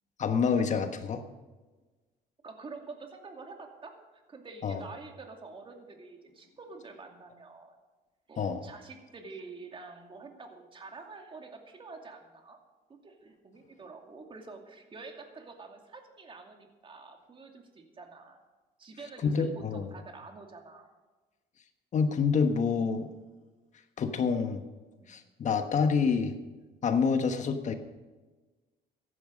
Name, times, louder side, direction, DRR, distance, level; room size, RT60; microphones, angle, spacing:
voice 1, 0.2-1.2 4.6-4.8 8.4-8.6 19.2-19.9 21.9-23.1 24.0-24.6 25.1-26.3 26.8-27.7, left 5 dB, 45° left, 7 dB, 1.4 m, -27 dB
voice 2, 2.4-7.7 8.3-12.6 13.0-18.4 18.8-20.9 25.0-25.1, right 4 dB, 30° right, 3 dB, 2.5 m, -47 dB
15.0 x 11.0 x 5.3 m, 1.2 s
cardioid pair, 110°, 17 cm